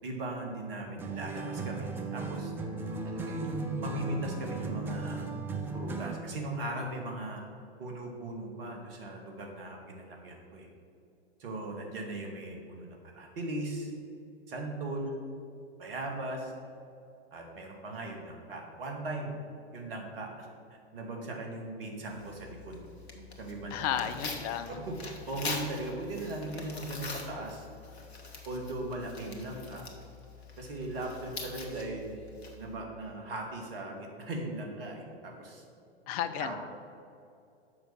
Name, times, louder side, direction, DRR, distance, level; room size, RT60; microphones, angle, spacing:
voice 1, 0.0-2.5 3.0-5.2 5.7-7.4 7.8-10.7 11.4-13.9 14.5-15.2 15.8-16.5 17.3-19.3 19.7-20.5 20.9-22.8 23.1-24.1 24.9-27.7 28.5-29.8 30.6-32.1 32.6-35.6 36.4-36.6, right 1 dB, 60° right, 1 dB, 1.9 m, -38 dB
sound 1, 1.0-6.3, right 3 dB, 5° right, 0.3 m, -36 dB
Tearing, 22.1-32.8, left 3 dB, 70° left, 1.5 m, -44 dB
voice 2, 23.7-24.8 36.1-36.6, left 10 dB, 35° left, 10 dB, 0.6 m, -33 dB
6.8 x 5.3 x 7.0 m, 2.6 s
figure-of-eight pair, 100°, 32 cm